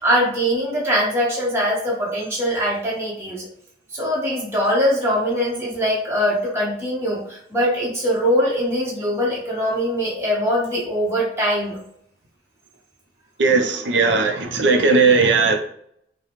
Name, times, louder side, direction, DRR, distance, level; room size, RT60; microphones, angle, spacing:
voice 1, 0.0-3.5 3.9-11.8, equal, 15° right, -6 dB, 1.2 m, -22 dB
voice 2, 13.4-15.6, right 4 dB, 75° right, 4 dB, 0.7 m, -17 dB
5.7 x 2.3 x 3.1 m, 0.68 s
head